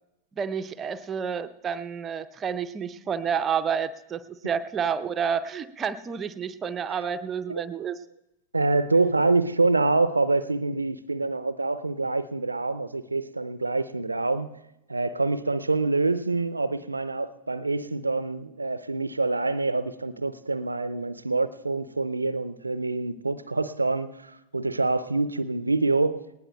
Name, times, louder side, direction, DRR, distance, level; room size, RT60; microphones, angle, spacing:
voice 1, 0.4-8.0, right 7 dB, 25° right, 0.5 m, -29 dB
voice 2, 8.5-14.6 14.9-26.3, right 3 dB, 80° right, 0.5 m, -26 dB
19.5 x 19.0 x 2.2 m
figure-of-eight pair, 90°, 0 cm